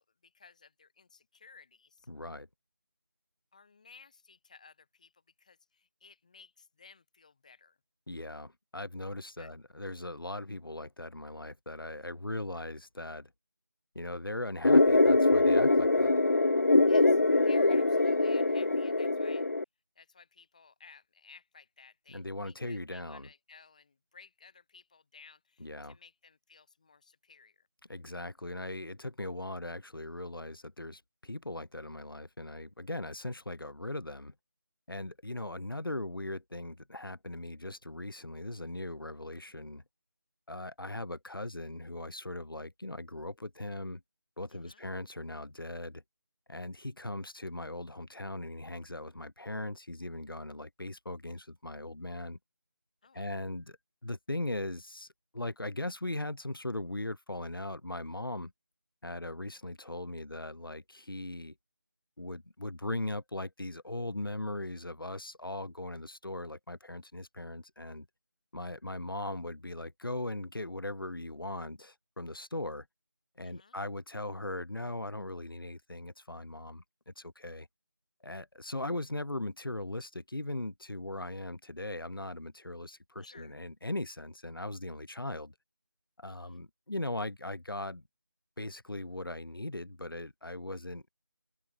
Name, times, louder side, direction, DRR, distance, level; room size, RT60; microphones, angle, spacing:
voice 1, 0.0-2.1 3.5-7.8 9.4-9.5 16.8-19.5 20.0-27.7 44.5-44.9 53.0-53.3 73.4-73.8 83.2-83.6 86.3-86.6, left 5 dB, 20° left, 5.6 m, -57 dB
voice 2, 2.1-2.5 8.1-13.3 13.9-16.1 22.1-23.3 25.6-26.0 27.9-34.3 34.9-39.8 40.5-44.0 44.4-46.0 46.5-52.4 53.1-53.8 54.0-55.1 55.3-58.5 59.0-61.5 62.2-68.1 68.5-72.9 73.4-77.7 78.2-85.5 86.2-88.0 88.6-91.1, left 2 dB, 90° left, 3.1 m, -39 dB
sound 1, 14.6-19.6, left 2 dB, 45° left, 1.0 m, -23 dB
figure-of-eight pair, 175°, 11 cm